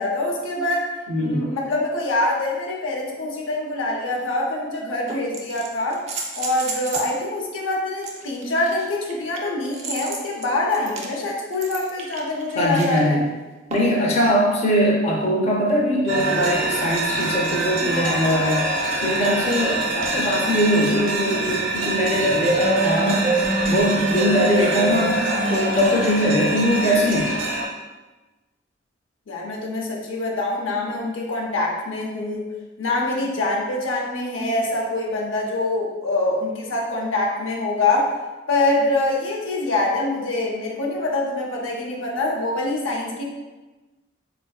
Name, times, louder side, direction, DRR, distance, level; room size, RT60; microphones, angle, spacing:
voice 1, 0.0-0.9 1.2-6.0 6.3-13.2 29.3-32.4 32.8-38.1 38.5-43.2, left 2 dB, 90° left, -1 dB, 0.6 m, -24 dB
voice 2, 1.1-1.5 12.6-13.2 13.7-18.6 19.0-23.2 23.7-25.2 25.5-27.3, equal, 35° left, -3 dB, 0.5 m, -21 dB
sound 1, 4.0-4.1 5.1-7.2 8.0-13.0 13.7-14.1 15.7-15.8, right 4 dB, 35° right, 0.4 m, -34 dB
sound 2, 16.1-27.7, right 2 dB, 90° right, 1.0 m, -24 dB
4.2 x 2.5 x 2.3 m, 1.2 s
head